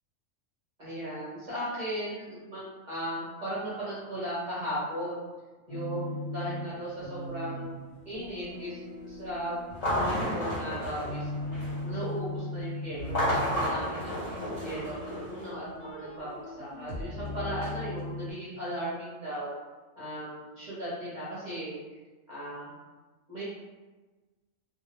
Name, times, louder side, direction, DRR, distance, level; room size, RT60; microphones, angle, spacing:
voice 1, 0.8-5.2 5.7-7.8 8.1-8.8 9.1-9.6 9.9-11.3 11.8-14.2 14.6-19.5 19.9-21.8 22.3-22.7 23.3-23.4, right 1 dB, 40° right, -10 dB, 0.7 m, -36 dB
sound 1, 5.7-18.3, left 1 dB, 55° left, 0.9 m, -39 dB
sound 2, 9.7-11.9 13.0-15.5, left 1 dB, 75° left, 1.1 m, -32 dB
2.3 x 2.0 x 2.8 m, 1.3 s
omnidirectional pair, 1.4 m